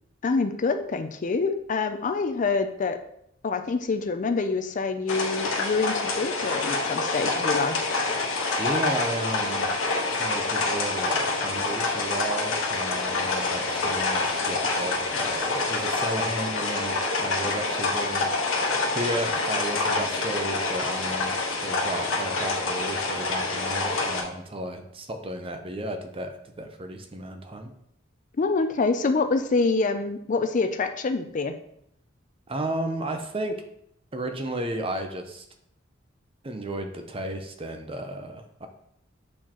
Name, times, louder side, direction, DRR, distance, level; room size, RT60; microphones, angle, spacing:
voice 1, 0.2-3.0 3.4-7.9 28.4-31.5, left 4 dB, 40° left, 8 dB, 0.4 m, -26 dB
sound 1, 5.1-24.2, left 3 dB, 80° left, 1.3 m, -27 dB
voice 2, 8.6-9.7 10.2-21.3 21.6-27.7 32.5-33.6 34.1-35.4 36.4-38.7, right 1 dB, 30° right, 6 dB, 0.6 m, -33 dB
7.3 x 4.4 x 3.0 m, 0.73 s
head